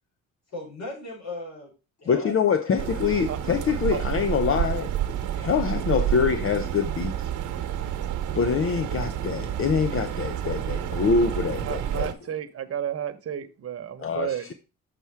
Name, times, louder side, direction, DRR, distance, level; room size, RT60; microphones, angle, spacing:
voice 1, 0.5-1.7 2.0-2.3 2.7-2.8, left 2 dB, 60° left, 5.5 m, -37 dB
voice 2, 2.1-4.9 5.3-7.3 8.4-12.1 14.0-14.5, left 6 dB, 45° left, 0.8 m, -25 dB
sound 1, 2.8-12.1, right 10 dB, 80° right, 1.0 m, -29 dB
voice 3, 11.6-14.5, right 9 dB, 50° right, 1.1 m, -32 dB
7.0 x 5.8 x 4.7 m
cardioid pair, 90°, 30 cm